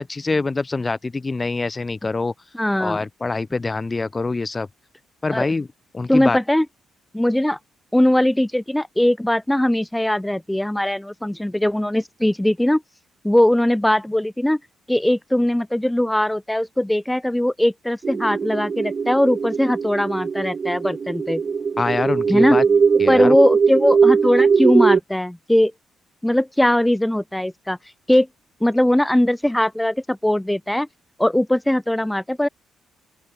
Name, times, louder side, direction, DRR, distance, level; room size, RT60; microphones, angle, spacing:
voice 1, 0.0-2.3 2.8-4.7 5.2-5.7 5.9-6.4 21.8-22.6 23.0-23.4, left 3 dB, 25° left, 1.4 m, -24 dB
voice 2, 2.5-3.1 5.3-5.5 6.1-6.7 7.1-7.6 7.9-12.8 13.2-14.6 14.9-21.4 22.3-22.6 23.1-25.7 26.2-27.8 28.1-28.3 28.6-30.9 31.2-32.5, left 1 dB, 5° left, 1.0 m, -20 dB
sound 1, 18.0-25.0, right 5 dB, 40° right, 0.7 m, -20 dB
open air
cardioid pair, 90°, 0 cm